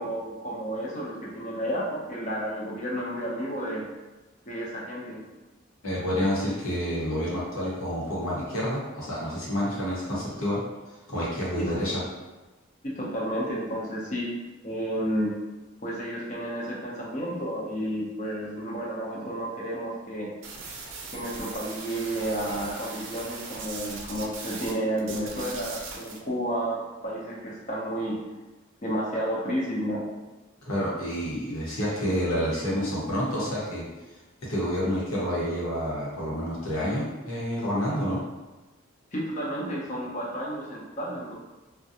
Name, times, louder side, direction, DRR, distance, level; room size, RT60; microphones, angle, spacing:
voice 1, 0.0-3.8 4.5-5.2 11.6-11.7 12.8-14.3 14.6-15.3 15.8-20.3 21.1-28.2 28.8-30.1 39.1-41.3, equal, 35° left, -4 dB, 0.5 m, -31 dB
voice 2, 5.8-10.6 11.1-12.0 30.6-33.8 34.5-38.2, equal, 85° left, -7 dB, 1.0 m, -28 dB
sound 1, 20.4-24.7 25.0-26.2, right 4 dB, 65° right, 0.5 m, -39 dB
2.5 x 2.2 x 2.7 m, 1.1 s
head